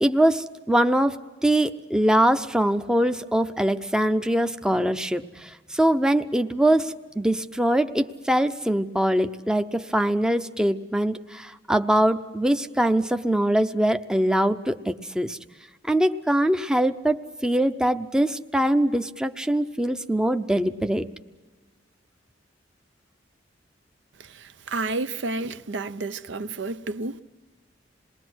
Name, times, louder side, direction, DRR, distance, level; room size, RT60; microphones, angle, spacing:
voice 1, 0.0-15.4 15.9-21.1, right 1 dB, 5° right, 0.6 m, -23 dB
voice 2, 24.2-27.2, right 3 dB, 70° right, 0.6 m, -31 dB
27.5 x 20.5 x 6.2 m
head